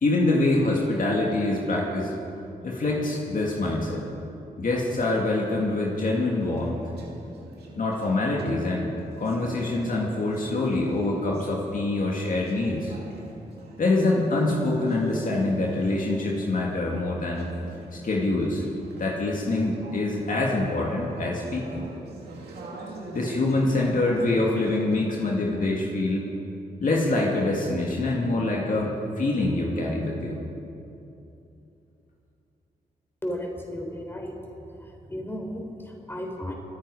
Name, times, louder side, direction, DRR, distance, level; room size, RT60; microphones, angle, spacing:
voice 1, 0.0-2.1 2.6-4.0 4.6-6.8 7.7-8.9 9.2-12.9 13.8-17.5 17.9-18.6 19.0-21.8 23.1-26.3 26.8-30.4, left 2 dB, 55° left, -2 dB, 2.5 m, -25 dB
Conversation / Chatter, 5.4-25.0, right 2 dB, 85° right, 2.4 m, -44 dB
voice 2, 33.2-34.3 35.1-36.5, equal, 15° left, 1 dB, 4.0 m, -34 dB
27.0 x 9.7 x 5.0 m, 2.8 s
supercardioid pair, 50°, 16 cm